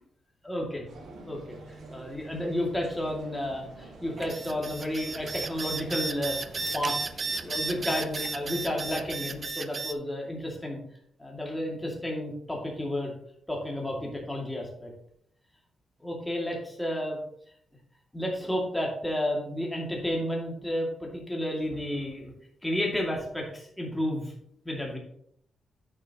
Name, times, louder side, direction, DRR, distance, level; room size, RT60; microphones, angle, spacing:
voice 1, 0.4-0.9 1.3-7.0 7.4-10.8 11.2-13.1 13.5-14.9 16.0-17.2 18.1-22.3 22.6-24.3 24.6-25.0, left 1 dB, 5° left, -2 dB, 2.2 m, -32 dB
sound 1, 0.8-9.5, right 2 dB, 70° right, 2.5 m, -47 dB
sound 2, 4.2-9.9, right 3 dB, 40° right, 0.5 m, -33 dB
9.6 x 6.6 x 2.9 m, 0.68 s
cardioid pair, 85°, 0 cm